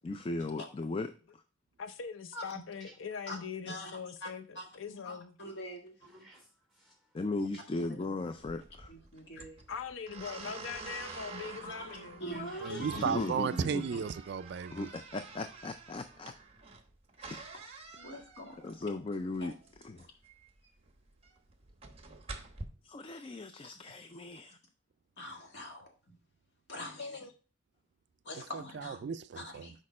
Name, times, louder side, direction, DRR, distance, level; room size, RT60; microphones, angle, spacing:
voice 1, 0.0-1.1 7.1-8.9 12.8-13.8 14.7-16.3 17.2-17.4 18.6-19.5 19.8-20.1 22.8-24.6, left 2 dB, 30° left, 0.4 m, -37 dB
voice 2, 1.8-5.3 9.3-12.2 27.0-27.3, left 6 dB, 90° left, 0.6 m, -42 dB
voice 3, 3.7-4.3 4.6-5.9 7.9-8.0 8.9-9.6 11.6-13.6 13.9-14.0 17.9-18.6 19.4-19.5 20.0-20.1 25.2-25.9 26.7-27.2 28.2-29.0 29.4-29.7, equal, 60° left, 1.8 m, -43 dB
voice 4, 6.0-7.2 7.5-7.6 12.3-13.3, right 1 dB, ahead, 3.1 m, -55 dB
sound 1, 8.4-22.6, right 4 dB, 30° right, 0.9 m, -48 dB
voice 5, 12.6-14.8 28.5-29.7, right 6 dB, 60° right, 0.3 m, -34 dB
6.5 x 5.0 x 4.2 m
head